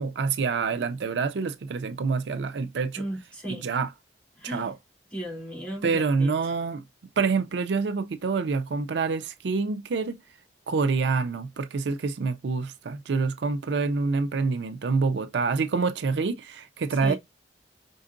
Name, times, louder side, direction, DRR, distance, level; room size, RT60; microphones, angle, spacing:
voice 1, 0.0-3.0 3.5-3.9 4.4-4.8 5.8-6.8 7.2-10.2 10.7-17.1, right 4 dB, 75° right, 0.4 m, -27 dB
voice 2, 3.0-3.7 4.4-4.7 5.1-6.3 17.0-17.2, right 1 dB, 5° left, 2.8 m, -35 dB
5.1 x 3.9 x 2.5 m
head